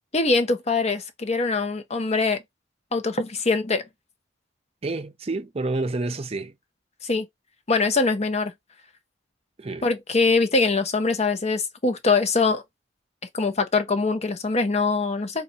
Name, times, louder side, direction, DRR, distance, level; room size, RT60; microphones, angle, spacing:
voice 1, 0.1-2.4 2.9-3.8 7.0-7.3 7.7-8.5 9.8-12.6 13.3-15.4, left 3 dB, 35° left, 0.8 m, -23 dB
voice 2, 4.8-6.5 9.6-9.9, right 2 dB, 35° right, 0.6 m, -29 dB
4.0 x 2.4 x 4.1 m
head